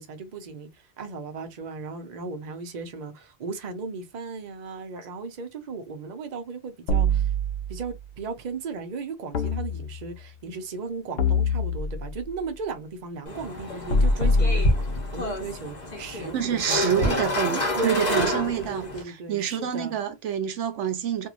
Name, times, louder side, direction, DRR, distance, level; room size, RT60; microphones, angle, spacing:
voice 1, 0.0-7.3 7.7-14.8 15.1-17.3 17.7-20.0, right 4 dB, 45° right, 0.7 m, -36 dB
sound 1, 6.9-8.0 9.3-10.3 11.2-12.3 13.9-15.3, left 1 dB, 70° left, 0.8 m, -24 dB
sound 2, 13.3-19.0, left 1 dB, 40° left, 1.1 m, -29 dB
voice 2, 16.3-18.8 19.3-21.3, right 8 dB, 90° right, 1.0 m, -27 dB
2.9 x 2.6 x 2.4 m
omnidirectional pair, 1.2 m